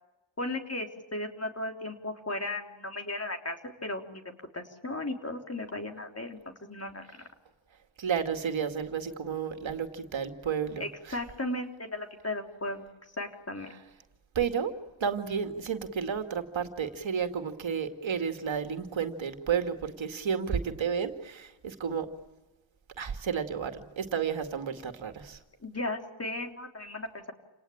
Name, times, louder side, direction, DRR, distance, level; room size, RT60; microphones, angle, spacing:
voice 1, 0.4-4.2 4.5-7.0 10.8-12.8 13.2-13.7 25.6-27.3, left 2 dB, 30° left, 4 dB, 3.6 m, -36 dB
voice 2, 8.0-11.2 14.4-14.7 15.0-22.1 23.0-25.4, right 7 dB, 65° right, 7 dB, 2.2 m, -32 dB
28.5 x 19.0 x 8.7 m, 1.1 s
cardioid pair, 65°, 49 cm